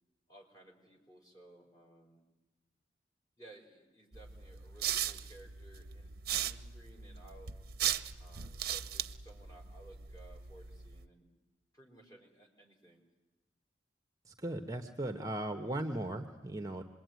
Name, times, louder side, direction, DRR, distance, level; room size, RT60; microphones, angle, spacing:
voice 1, 0.3-2.2 3.4-7.5 8.2-11.3 11.7-13.0, right 2 dB, 20° left, 0 dB, 4.7 m, -58 dB
sound 1, 4.1-11.1, right 10 dB, 55° right, 0.8 m, -38 dB
voice 2, 14.3-16.8, right 1 dB, 20° right, 6 dB, 1.0 m, -37 dB
26.5 x 21.5 x 9.3 m, 1.1 s
head